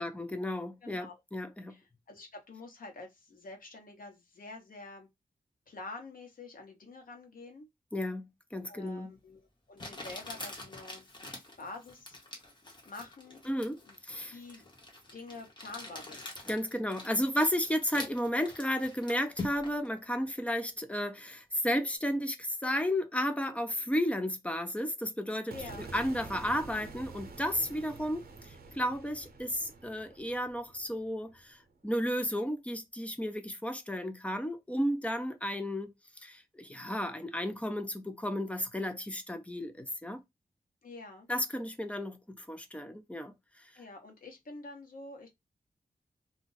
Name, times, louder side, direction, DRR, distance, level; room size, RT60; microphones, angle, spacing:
voice 1, 0.0-1.8 7.9-9.1 13.5-13.8 14.0-14.4 16.5-25.6 25.9-35.9 36.2-40.2 41.3-43.3 43.6-43.7, equal, 10° left, 0.5 m, -33 dB
voice 2, 0.8-1.2 1.7-5.1 5.7-7.7 8.7-9.4 9.7-11.1 11.6-12.2 12.8-13.4 13.9-14.0 14.3-14.7 15.1-16.2 25.5-25.9 40.8-41.3 43.8-45.3, left 3 dB, 65° left, 1.1 m, -47 dB
Crumpling crinkling, 8.9-9.0 9.8-19.9, left 2 dB, 30° left, 1.1 m, -45 dB
sound 1, 25.5-31.7, right 3 dB, 80° right, 0.7 m, -48 dB
2.5 x 2.2 x 3.8 m
wide cardioid pair, 130°, 16 cm